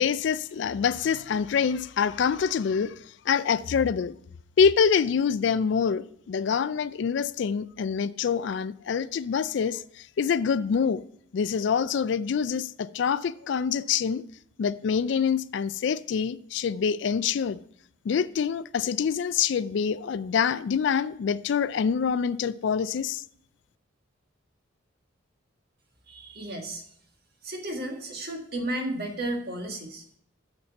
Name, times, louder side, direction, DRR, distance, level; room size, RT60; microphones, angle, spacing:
voice 1, 0.0-2.9 3.3-4.1 4.6-11.0 11.3-14.2 14.6-17.6 18.1-23.2, left 6 dB, 60° left, 0.3 m, -26 dB
voice 2, 26.1-26.8 27.4-30.2, right 1 dB, 50° right, 1.6 m, -33 dB
7.0 x 6.6 x 5.5 m
head